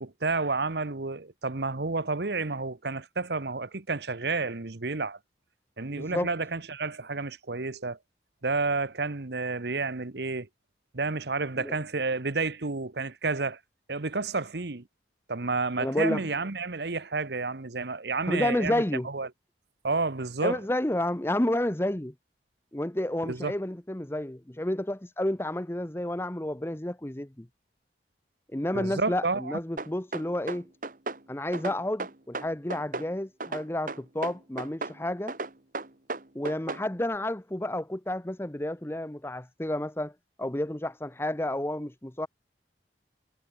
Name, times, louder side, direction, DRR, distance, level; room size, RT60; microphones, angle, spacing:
voice 1, 0.0-5.2 5.8-8.0 8.4-10.5 10.9-13.6 13.9-14.8 15.3-19.3 19.8-20.6 23.2-23.5 28.7-29.6, right 3 dB, 65° right, 1.1 m, -30 dB
voice 2, 5.9-6.3 11.6-11.7 15.8-16.3 18.3-19.1 20.4-22.1 22.7-27.5 28.5-30.7 31.3-35.4 36.3-40.1 40.4-42.3, left 1 dB, 15° left, 0.8 m, -30 dB
sound 1, 29.8-31.2 31.5-33.1 33.4-35.0 35.3-36.9, right 3 dB, 50° right, 1.9 m, -35 dB
head